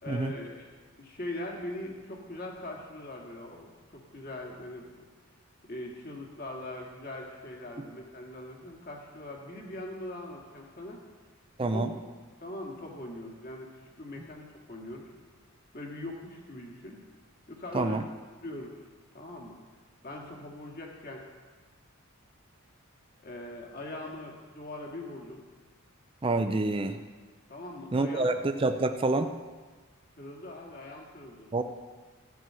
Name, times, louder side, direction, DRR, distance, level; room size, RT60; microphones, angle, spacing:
voice 1, 0.0-0.7 1.0-5.0 5.7-11.0 11.7-11.9 12.4-15.1 15.7-17.0 17.5-18.0 18.4-18.7 19.1-19.6 20.0-21.3 23.2-25.4 27.5-28.3 30.2-31.5, left 1 dB, 40° left, 0 dB, 1.9 m, -41 dB
voice 2, 11.6-11.9 17.7-18.0 26.2-27.0 27.9-29.3 31.5-31.6, right 2 dB, 25° right, 7 dB, 0.4 m, -27 dB
14.0 x 6.3 x 7.6 m, 1.4 s
head